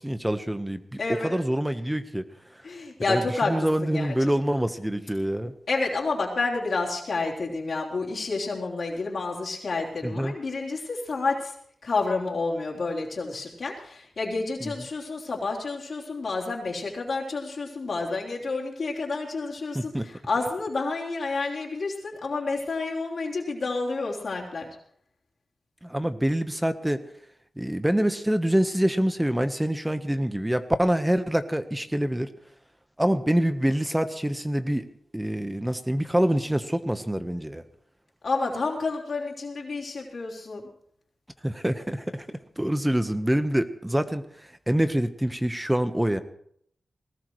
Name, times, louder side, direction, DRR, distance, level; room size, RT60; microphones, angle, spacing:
voice 1, 0.0-2.2 3.1-3.2 3.5-5.5 10.0-10.3 14.6-14.7 19.7-20.1 25.8-27.0 27.6-32.3 33.0-34.8 35.1-37.6 41.4-44.2 44.7-46.2, right 1 dB, 10° right, 9 dB, 1.2 m, -25 dB
voice 2, 1.0-1.4 2.6-3.5 3.8-4.3 5.7-11.5 11.8-24.7 38.2-40.6, left 3 dB, 70° left, -3 dB, 3.8 m, -29 dB
20.5 x 18.5 x 3.2 m, 0.69 s
cardioid pair, 50°, 0 cm